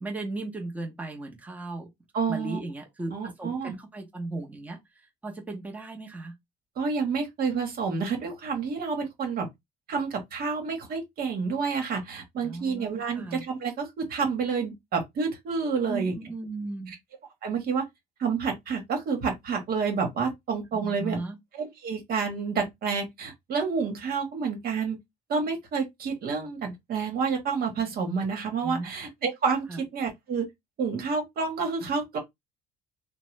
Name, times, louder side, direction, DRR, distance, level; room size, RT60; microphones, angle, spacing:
voice 1, 0.0-1.9 2.3-4.8 5.2-6.3 12.4-13.4 15.8-16.9 20.7-21.4 28.6-28.9 29.7-29.8, right 2 dB, 10° right, 0.8 m, -36 dB
voice 2, 2.1-2.6 3.1-3.8 6.8-9.5 9.9-16.2 16.9-17.0 17.4-17.9 18.2-21.2 21.5-25.0 25.3-30.5 30.8-32.2, right 5 dB, 60° right, 1.1 m, -29 dB
3.0 x 2.1 x 3.1 m
cardioid pair, 110°, 17 cm